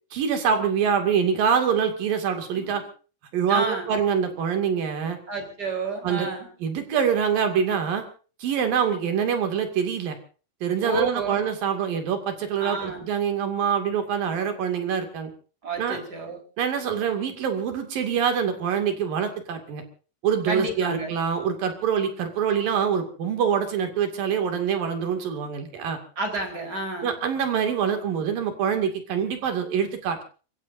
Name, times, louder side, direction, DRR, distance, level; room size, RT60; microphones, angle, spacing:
voice 1, 0.1-2.8 3.3-5.2 6.0-6.3 6.6-8.0 8.4-10.2 10.6-15.3 15.8-16.0 16.6-19.8 20.2-26.0 27.0-30.2, right 7 dB, 55° right, 6 dB, 3.8 m, -25 dB
voice 2, 3.5-3.8 5.3-6.5 10.8-11.4 12.6-13.1 15.6-16.4 20.5-21.1 26.2-27.1, right 2 dB, 20° right, 4 dB, 4.4 m, -30 dB
29.5 x 15.5 x 2.7 m, 0.38 s
omnidirectional pair, 5.3 m